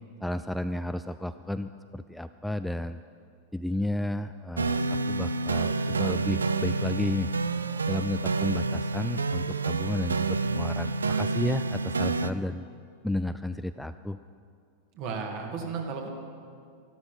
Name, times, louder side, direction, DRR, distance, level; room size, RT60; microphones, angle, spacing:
voice 1, 0.2-3.0 3.5-7.3 7.9-12.7 13.0-14.2, left 1 dB, 5° left, 10 dB, 0.3 m, -32 dB
sound 1, 4.6-12.3, right 3 dB, 75° right, 0.5 m, -28 dB
voice 2, 14.9-16.1, right 5 dB, 45° right, 2 dB, 2.2 m, -34 dB
13.0 x 13.0 x 6.0 m, 2.3 s
figure-of-eight pair, 90°, 0 cm